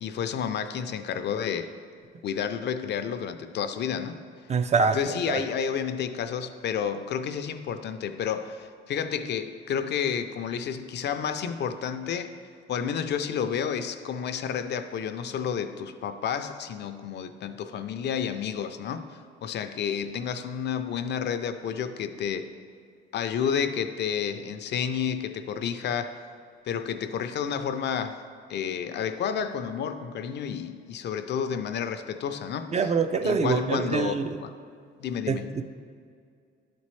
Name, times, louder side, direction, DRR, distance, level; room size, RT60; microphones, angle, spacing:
voice 1, 0.0-1.7 2.2-4.2 4.9-12.3 12.7-19.0 19.4-22.5 23.1-26.2 26.6-28.2 28.5-32.9 33.2-34.5 35.0-35.6, left 7 dB, 60° left, 9 dB, 0.4 m, -30 dB
voice 2, 4.5-5.0 5.3-5.4 32.7-34.4 35.3-35.6, right 5 dB, 35° right, 8 dB, 0.4 m, -25 dB
11.0 x 4.2 x 3.2 m, 2.2 s
cardioid pair, 90°, 20 cm